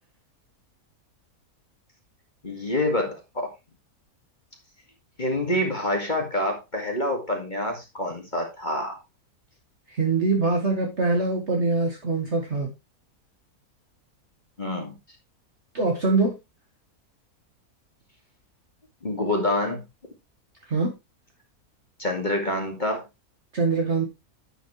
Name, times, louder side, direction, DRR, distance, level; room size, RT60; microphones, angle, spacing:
voice 1, 2.4-3.5 5.2-9.0 14.6-14.9 19.0-19.8 22.0-23.0, left 1 dB, 30° left, 2.2 m, -27 dB
voice 2, 9.9-12.7 15.7-16.4 20.7-20.9 23.5-24.1, right 3 dB, 45° right, 2.0 m, -23 dB
10.0 x 7.6 x 3.2 m
omnidirectional pair, 1.6 m